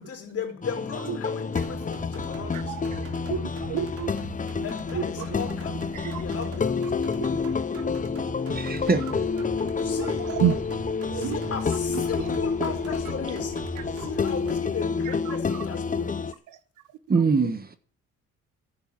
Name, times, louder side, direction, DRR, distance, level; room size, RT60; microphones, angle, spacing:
voice 1, 0.0-2.8 4.6-5.8 6.1-7.5 9.8-10.2 11.1-13.6 13.9-16.3, left 6 dB, 50° left, 4.0 m, -36 dB
sound 1, 0.6-16.3, left 5 dB, 25° left, 0.7 m, -29 dB
sound 2, 1.5-14.6, right 3 dB, 50° right, 2.9 m, -40 dB
voice 2, 2.5-4.1 4.9-5.3 5.9-6.2 7.2-7.3 10.0-10.6 11.1-11.4 12.6-12.7 13.9-14.1 15.1-15.4 16.0-16.1, right 9 dB, 80° right, 1.3 m, -30 dB
voice 3, 8.5-9.3 17.1-17.8, right 4 dB, 30° right, 1.4 m, -24 dB
11.0 x 7.0 x 8.8 m
cardioid pair, 90°, 30 cm